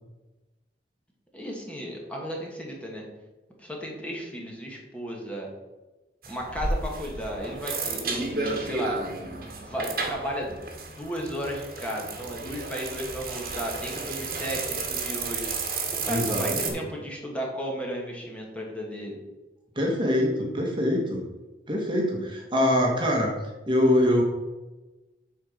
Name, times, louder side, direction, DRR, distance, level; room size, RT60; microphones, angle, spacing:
voice 1, 1.3-3.1 3.6-5.5 6.3-9.0 9.6-10.6 10.9-15.4 16.0-19.2, equal, 5° left, -2 dB, 1.6 m, -34 dB
sound 1, 6.2-16.7, right 3 dB, 55° right, 1.7 m, -32 dB
voice 2, 16.1-16.8 19.7-21.2 21.7-23.3 23.6-24.2, left 1 dB, 30° right, 0 dB, 1.5 m, -24 dB
8.5 x 4.5 x 6.5 m, 1.1 s
head